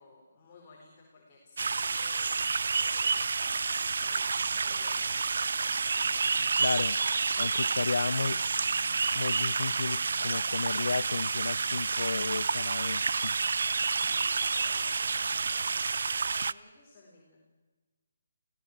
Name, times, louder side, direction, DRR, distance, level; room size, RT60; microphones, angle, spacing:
voice 1, 0.0-3.4 3.9-5.4 5.9-6.6 6.9-8.3 14.0-17.4, left 3 dB, 25° left, -4 dB, 4.5 m, -55 dB
sound 1, 1.6-16.5, right 4 dB, 65° right, 0.6 m, -29 dB
voice 2, 6.6-7.0 7.4-8.4 9.1-13.3, left 4 dB, 70° left, 20 dB, 0.7 m, -33 dB
25.5 x 16.0 x 7.4 m, 1.3 s
hypercardioid pair, 165°, 0 cm